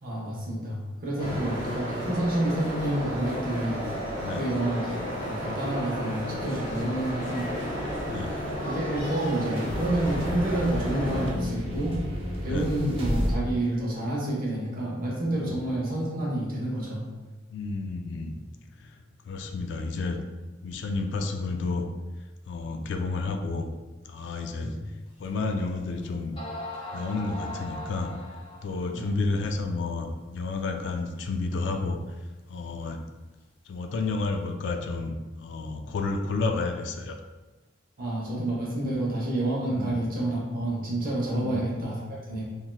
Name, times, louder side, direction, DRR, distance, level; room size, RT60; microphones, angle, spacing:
voice 1, 0.0-3.8 4.3-7.5 8.6-12.0 12.4-17.0 24.6-24.8 28.9-29.1 38.0-42.4, right 1 dB, 45° right, -4 dB, 0.8 m, -29 dB
sound 1, 1.2-11.3, equal, 45° left, 1.3 m, -33 dB
sound 2, 6.4-13.4, equal, 30° right, 0.4 m, -33 dB
voice 2, 8.1-8.4 12.5-12.7 15.4-15.6 17.5-18.4 18.8-19.0 19.2-20.2 20.6-21.9 22.5-23.7 24.1-24.8 25.2-26.4 26.9-28.1 28.6-32.0 32.5-33.0 33.7-37.2 39.6-40.0 41.3-41.7, left 3 dB, 65° left, 5 dB, 0.3 m, -31 dB
sound 3, 25.2-25.3 26.0-26.1 26.4-28.8, left 1 dB, 25° left, 0.7 m, -39 dB
3.2 x 2.8 x 2.2 m, 1.2 s
head